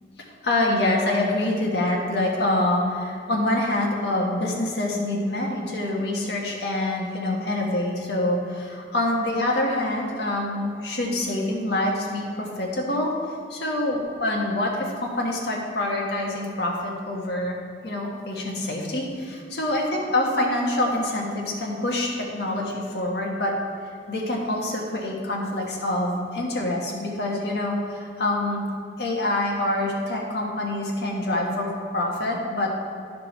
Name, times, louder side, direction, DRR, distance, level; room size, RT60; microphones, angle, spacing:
voice 1, 0.4-13.1 13.5-17.6 17.8-23.5 24.1-28.6 29.0-32.8, left 1 dB, 60° left, -1 dB, 1.5 m, -26 dB
12.0 x 5.2 x 4.4 m, 2.4 s
head